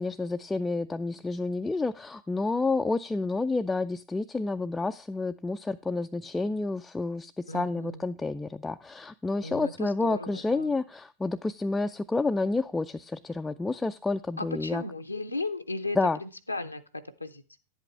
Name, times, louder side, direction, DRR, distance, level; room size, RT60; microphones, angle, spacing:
voice 1, 0.0-14.8 16.0-16.2, left 3 dB, 10° left, 7 dB, 0.3 m, -29 dB
voice 2, 7.5-8.0 9.4-10.7 14.4-17.6, left 2 dB, 85° left, 7 dB, 0.6 m, -36 dB
10.5 x 8.2 x 3.2 m, 0.34 s
figure-of-eight pair, 90°, 0 cm